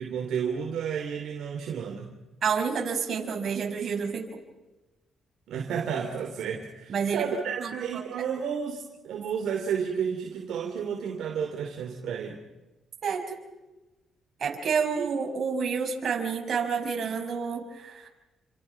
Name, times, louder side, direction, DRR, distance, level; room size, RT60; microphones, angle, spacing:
voice 1, 0.0-2.1 5.5-12.4 15.0-15.1, right 7 dB, 75° right, 2 dB, 3.4 m, -31 dB
voice 2, 2.4-4.2 6.9-7.3 7.6-8.0 13.0-13.4 14.4-18.1, right 6 dB, 55° right, 3 dB, 5.9 m, -29 dB
29.5 x 26.5 x 6.1 m, 1.1 s
cardioid pair, 90°, 0 cm